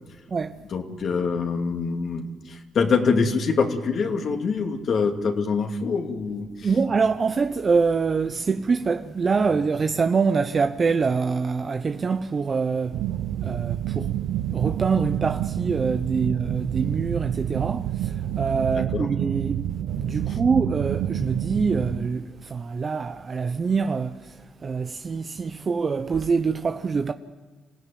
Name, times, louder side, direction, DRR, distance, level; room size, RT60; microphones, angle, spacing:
voice 1, 0.7-6.7 18.7-19.1 20.3-20.4, left 5 dB, 60° left, 2.6 m, -25 dB
voice 2, 6.6-13.0 13.4-14.1 14.5-19.7 20.0-27.1, right 5 dB, 45° right, 1.0 m, -25 dB
sound 1, 12.9-22.1, right 12 dB, 80° right, 0.7 m, -28 dB
26.5 x 16.0 x 9.4 m
supercardioid pair, 55°, 0 cm